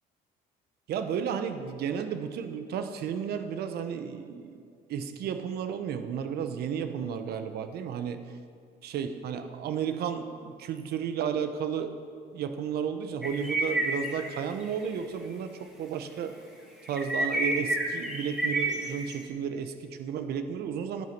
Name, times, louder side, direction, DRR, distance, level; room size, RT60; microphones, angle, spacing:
voice 1, 0.9-4.6 4.9-8.2 8.8-12.0 12.3-16.3 16.9-21.1, right 7 dB, 70° right, 9 dB, 0.9 m, -33 dB
sound 1, 13.2-14.3 14.6-14.9 15.2-15.3 16.9-19.1, right 1 dB, 5° right, 2.0 m, -29 dB
10.5 x 9.6 x 6.0 m, 2.2 s
cardioid pair, 110°, 17 cm